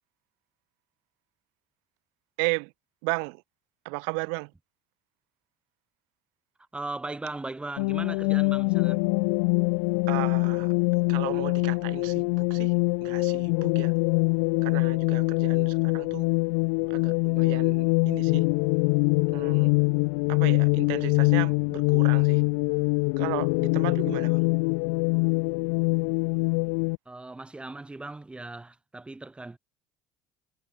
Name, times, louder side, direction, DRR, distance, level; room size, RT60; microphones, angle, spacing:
voice 1, 2.4-2.7 3.0-3.4 3.9-4.5 10.1-10.7 11.1-12.7 13.0-13.9 14.6-16.3 16.9-18.5 19.3-19.7 20.3-22.4 23.2-24.5, right 40 dB or more, 75° right, 1.8 m, -34 dB
voice 2, 6.7-9.0 27.0-29.6, right 2 dB, 10° right, 3.1 m, -38 dB
sound 1, 7.8-27.0, left 36 dB, 80° left, 0.3 m, -24 dB
supercardioid pair, 100°, 9 cm